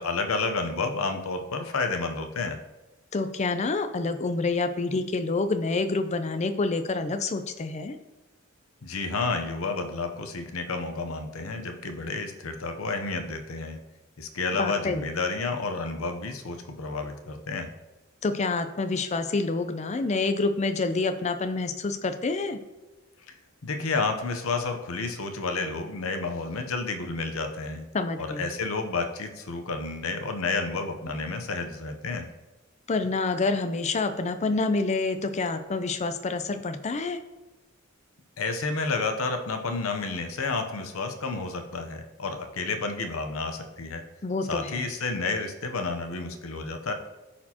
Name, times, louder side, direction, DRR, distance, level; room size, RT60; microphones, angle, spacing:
voice 1, 0.0-2.6 8.8-13.8 14.2-17.7 23.6-27.8 28.2-32.3 38.4-44.0 44.5-46.9, left 3 dB, 90° left, 6 dB, 0.8 m, -30 dB
voice 2, 3.1-8.0 14.6-15.0 18.2-22.6 27.9-28.5 32.9-37.2 44.2-44.8, left 3 dB, 35° left, 9 dB, 0.5 m, -27 dB
13.0 x 4.3 x 2.9 m, 1.1 s
head